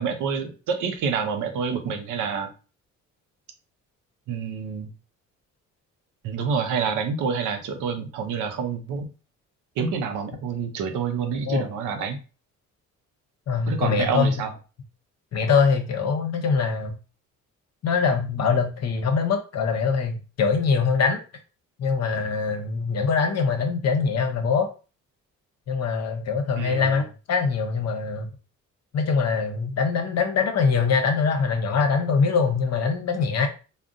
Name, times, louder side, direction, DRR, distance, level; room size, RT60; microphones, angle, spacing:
voice 1, 0.0-2.5 4.3-4.9 6.2-9.1 9.8-12.2 13.7-14.5 26.6-27.0, right 6 dB, 90° right, 6 dB, 0.6 m, -27 dB
voice 2, 13.5-14.3 15.3-16.9 17.8-21.2 21.8-24.7 25.7-28.3 28.9-33.5, left 5 dB, 55° left, 5 dB, 0.8 m, -23 dB
3.6 x 2.1 x 2.5 m, 0.34 s
cardioid pair, 90°, 30 cm